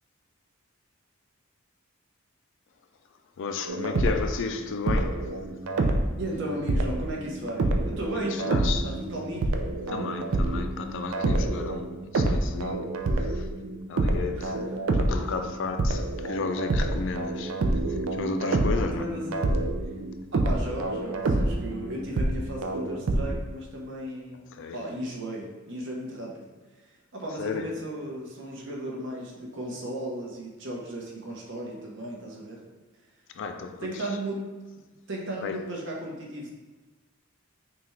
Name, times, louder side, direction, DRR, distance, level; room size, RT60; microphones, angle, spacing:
voice 1, 3.4-5.4 8.1-8.9 9.9-13.5 13.9-19.2 24.5-24.8 27.4-27.9 33.3-34.1 35.4-35.7, left 5 dB, 65° left, 0.4 m, -34 dB
sound 1, 3.7-4.4 4.9-23.4, right 2 dB, 90° right, 0.5 m, -28 dB
voice 2, 6.2-9.6 14.3-14.7 18.8-19.5 20.3-24.4 24.7-26.5 26.8-32.6 33.8-34.5 35.1-36.5, right 1 dB, 65° right, 1.0 m, -35 dB
5.8 x 2.4 x 3.2 m
head